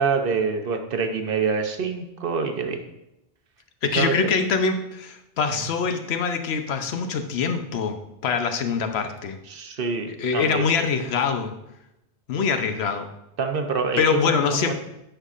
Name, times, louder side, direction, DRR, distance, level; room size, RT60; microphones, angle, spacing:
voice 1, 0.0-2.8 4.0-4.1 9.5-10.7 13.4-14.3 14.7-14.8, right 5 dB, 60° right, 5 dB, 0.9 m, -25 dB
voice 2, 3.8-8.0 8.2-9.4 10.1-11.5 12.3-13.1 14.0-14.7, left 5 dB, 75° left, 7 dB, 0.9 m, -24 dB
10.5 x 5.4 x 2.5 m, 0.87 s
omnidirectional pair, 1.1 m